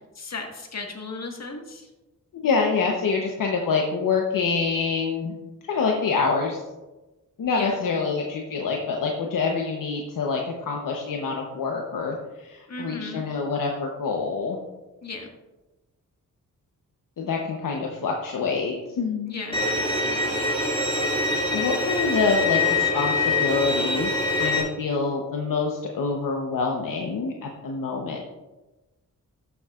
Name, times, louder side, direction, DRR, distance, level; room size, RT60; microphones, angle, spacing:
voice 1, 0.2-1.9 7.5-7.8 12.7-13.3 15.0-15.3 19.3-20.5, left 3 dB, 50° left, 2 dB, 1.8 m, -36 dB
voice 2, 2.4-5.3 5.6-6.6 7.4-14.6 17.2-19.4 21.5-24.1 24.4-28.2, left 4 dB, 70° left, 1 dB, 1.0 m, -26 dB
Bowed string instrument, 19.5-24.6, left 2 dB, 15° left, 2.5 m, -24 dB
12.5 x 7.1 x 2.5 m, 1.1 s
cardioid pair, 75°, 34 cm